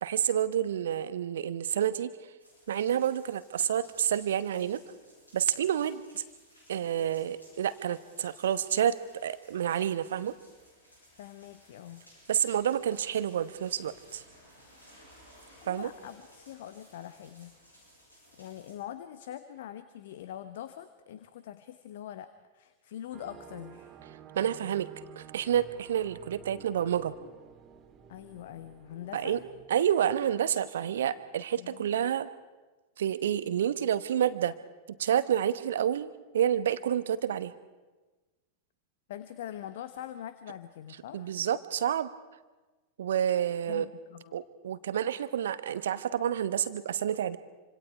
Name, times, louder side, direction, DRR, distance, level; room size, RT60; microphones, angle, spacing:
voice 1, 0.0-2.1 2.7-4.8 5.3-6.2 6.7-10.4 12.3-14.2 15.7-15.9 24.3-24.9 25.2-27.1 29.1-29.4 29.7-32.3 33.0-34.5 35.0-37.5 41.1-42.1 43.0-43.9 44.3-47.4, right 9 dB, 60° right, 14 dB, 1.0 m, -29 dB
sound 1, 2.4-18.7, equal, 85° left, 7.5 m, -59 dB
voice 2, 11.2-12.0 15.6-17.5 18.4-22.3 22.5-24.0 28.1-29.4 31.6-31.9 39.1-41.3 43.7-44.3, left 11 dB, 55° left, 12 dB, 1.0 m, -43 dB
sound 2, 23.1-29.7, right 8 dB, 30° right, 2.0 m, -51 dB
27.0 x 26.0 x 4.8 m, 1.2 s
figure-of-eight pair, 90°, 0 cm